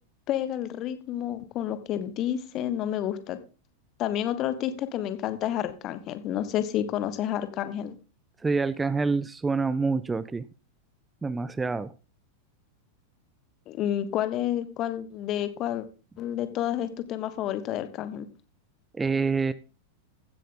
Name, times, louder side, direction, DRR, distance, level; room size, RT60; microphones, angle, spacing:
voice 1, 0.3-3.4 4.0-7.9 13.7-15.8 16.2-18.3, left 11 dB, 35° left, 12 dB, 1.3 m, -30 dB
voice 2, 8.4-10.4 11.2-11.9 18.9-19.5, right 4 dB, 10° right, 15 dB, 0.5 m, -26 dB
15.0 x 7.7 x 3.8 m, 0.34 s
figure-of-eight pair, 90°, 0 cm